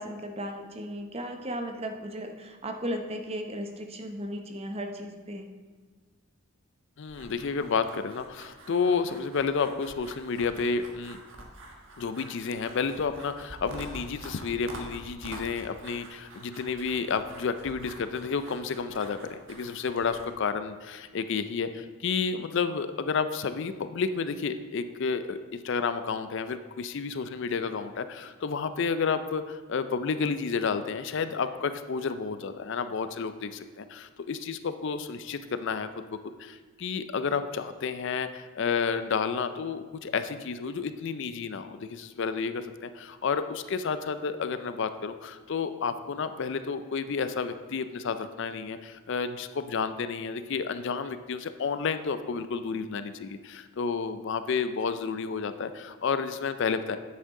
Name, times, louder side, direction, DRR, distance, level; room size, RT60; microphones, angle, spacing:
voice 1, 0.0-5.5, equal, 25° right, 5 dB, 0.7 m, -36 dB
voice 2, 7.0-11.2 12.0-57.0, left 5 dB, 55° left, 11 dB, 0.4 m, -31 dB
sound 1, 7.1-20.3, right 1 dB, 60° right, 1.4 m, -47 dB
9.9 x 8.1 x 3.7 m, 1.4 s
head